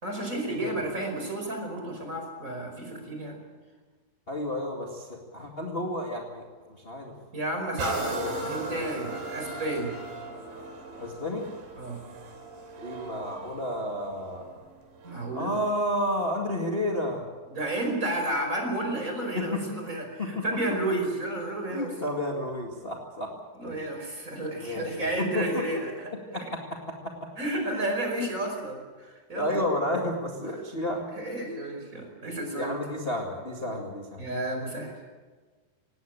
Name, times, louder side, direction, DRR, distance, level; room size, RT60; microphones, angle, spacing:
voice 1, 0.0-3.4 7.3-8.2 8.4-9.9 11.8-12.0 15.0-15.5 17.5-21.9 23.6-26.1 27.4-29.6 31.1-32.7 34.2-34.9, right 1 dB, 20° right, 3 dB, 5.0 m, -32 dB
voice 2, 4.3-7.1 7.8-8.5 11.0-11.4 12.8-14.5 15.3-17.2 19.3-19.6 20.2-20.4 21.7-23.3 23.6-23.8 24.6-25.6 26.3-26.8 27.0-27.1 27.7-27.8 28.1-28.3 29.3-31.1 32.6-34.2, left 1 dB, 30° left, 0 dB, 1.0 m, -31 dB
sound 1, 7.8-15.4 16.0-16.1, right 3 dB, 90° right, 5.4 m, -38 dB
19.5 x 17.5 x 8.9 m, 1.4 s
omnidirectional pair, 4.9 m